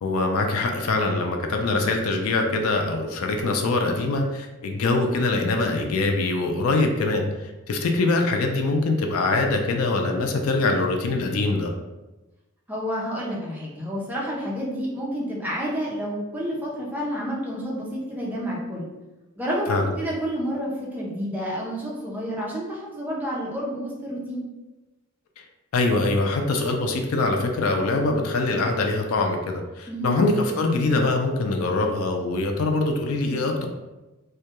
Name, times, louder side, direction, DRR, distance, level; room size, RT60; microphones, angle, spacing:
voice 1, 0.0-11.7 19.7-19.9 25.4-25.5 25.7-33.7, left 2 dB, 85° left, 3 dB, 0.4 m, -23 dB
voice 2, 12.7-18.9 19.4-24.4 29.9-30.2, equal, 10° right, -6 dB, 0.5 m, -29 dB
2.2 x 2.2 x 2.8 m, 1.1 s
head